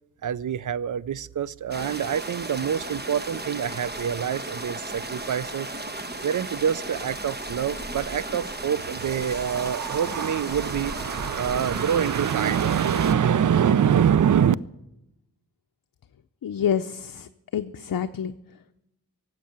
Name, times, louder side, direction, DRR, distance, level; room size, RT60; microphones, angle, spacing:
voice 1, 0.2-5.7 6.2-14.6, right 8 dB, 60° right, 0.5 m, -25 dB
sound 1, 1.7-13.1, right 2 dB, 30° right, 1.1 m, -35 dB
voice 2, 16.4-18.3, left 8 dB, 65° left, 0.6 m, -28 dB
17.5 x 7.7 x 8.8 m
wide cardioid pair, 80°, 36 cm